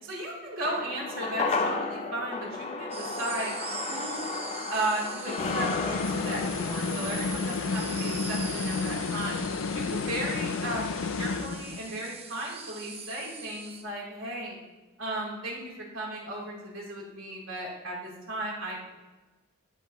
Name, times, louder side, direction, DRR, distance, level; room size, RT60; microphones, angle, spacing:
voice 1, 0.0-3.5 3.9-4.3 4.7-9.4 9.7-14.6 15.0-18.8, right 1 dB, 70° right, -4 dB, 3.6 m, -35 dB
sound 1, 0.6-9.1 9.4-9.5, left 3 dB, 30° left, 0.7 m, -34 dB
sound 2, 2.9-13.8, right 5 dB, 30° right, 0.9 m, -42 dB
sound 3, 5.4-12.0, left 5 dB, 65° left, 0.4 m, -31 dB
13.0 x 7.7 x 3.1 m, 1.2 s
head